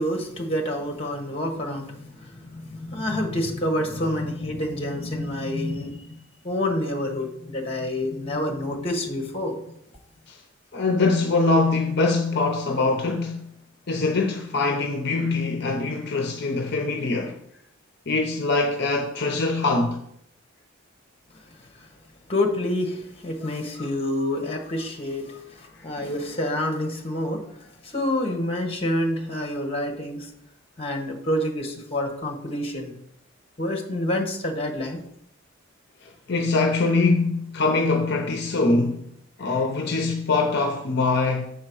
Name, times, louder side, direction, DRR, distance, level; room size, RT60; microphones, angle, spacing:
voice 1, 0.0-9.6 21.5-21.9 22.3-30.3 30.8-32.9 33.6-35.0, left 1 dB, 30° left, 1.4 m, -28 dB
voice 2, 10.7-13.5 13.9-17.4 18.1-20.0 36.0-39.0 39.4-41.5, left 3 dB, 55° left, 0.7 m, -23 dB
7.0 x 4.3 x 6.2 m
head